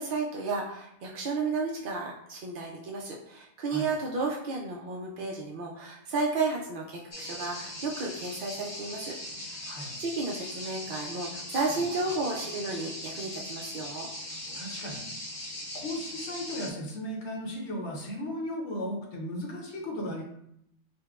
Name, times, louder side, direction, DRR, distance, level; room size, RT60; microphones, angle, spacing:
voice 1, 0.0-9.1 9.4-14.1, right 3 dB, 70° right, -1 dB, 0.5 m, -33 dB
sound 1, 7.1-16.7, left 1 dB, 85° left, 1.6 m, -40 dB
voice 2, 9.7-10.0 14.3-15.1 15.7-20.2, left 1 dB, 60° left, -1 dB, 1.1 m, -36 dB
5.5 x 2.2 x 2.3 m, 0.74 s
omnidirectional pair, 1.4 m